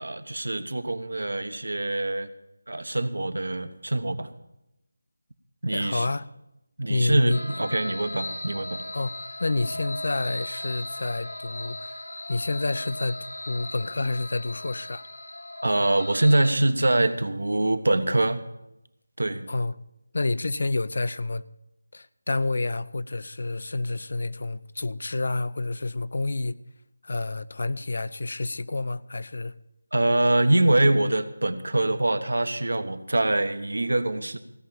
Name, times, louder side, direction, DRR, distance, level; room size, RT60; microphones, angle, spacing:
voice 1, 0.0-2.3 2.7-4.3 5.6-6.1 6.8-8.8 15.6-18.4 19.2-19.5 29.9-34.4, right 1 dB, 75° right, 1.1 m, -24 dB
voice 2, 5.7-6.3 6.9-7.4 8.9-12.0 12.3-13.2 13.5-15.0 19.5-19.8 20.1-21.4 21.9-26.6 27.0-29.5, left 2 dB, 60° left, 0.5 m, -29 dB
sound 1, 7.3-16.5, left 1 dB, 90° left, 1.5 m, -37 dB
16.5 x 5.7 x 8.8 m
figure-of-eight pair, 165°, 0 cm